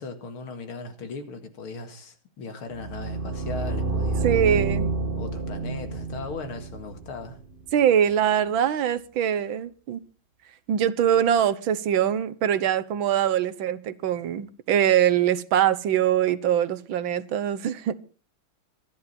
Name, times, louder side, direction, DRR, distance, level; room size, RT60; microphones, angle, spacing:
voice 1, 0.0-4.3 5.1-7.4, left 4 dB, 85° left, 2.8 m, -38 dB
sound 1, 2.7-7.7, right 3 dB, 30° right, 1.2 m, -29 dB
voice 2, 4.2-4.9 7.7-10.0 10.7-17.9, right 9 dB, 75° right, 1.7 m, -23 dB
24.5 x 10.5 x 4.3 m
omnidirectional pair, 2.3 m